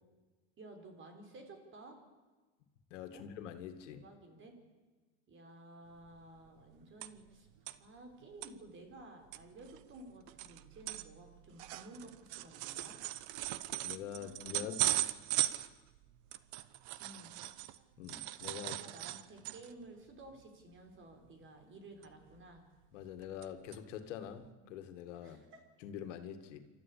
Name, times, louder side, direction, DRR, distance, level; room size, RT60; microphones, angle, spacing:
voice 1, 0.6-2.0 3.1-3.2 3.9-4.6 5.3-7.5 7.8-13.0 14.1-14.7 17.0-17.3 18.6-22.6 25.2-25.6, right 2 dB, 35° right, 5 dB, 4.4 m, -54 dB
voice 2, 2.9-4.1 13.8-14.8 18.0-18.8 22.9-25.4 25.8-26.6, left 9 dB, 85° left, 8 dB, 2.2 m, -45 dB
sound 1, 6.1-6.2 6.4-7.4 7.7-7.8 8.2-8.5 9.0-9.1 9.3-17.8 18.1-19.8 20.2-20.4 20.7-21.0 22.0-22.6 23.0-23.5 23.7-23.8 24.4-24.5, right 16 dB, 65° right, 1.0 m, -39 dB
26.5 x 13.5 x 8.5 m, 1.3 s
supercardioid pair, 130°, 36 cm